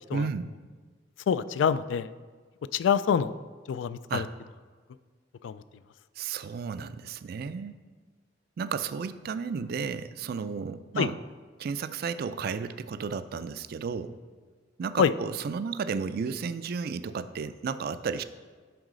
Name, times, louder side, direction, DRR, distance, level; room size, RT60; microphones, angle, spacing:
voice 1, 0.1-0.5 4.1-4.3 6.2-7.8 8.6-11.2 11.6-14.2 14.8-18.2, right 5 dB, 55° right, 13 dB, 0.4 m, -33 dB
voice 2, 1.3-2.1 2.7-3.3 3.7-4.3 5.4-5.6 11.0-11.1 15.0-15.1, left 7 dB, 75° left, 15 dB, 0.3 m, -25 dB
10.5 x 4.0 x 4.9 m, 1.5 s
head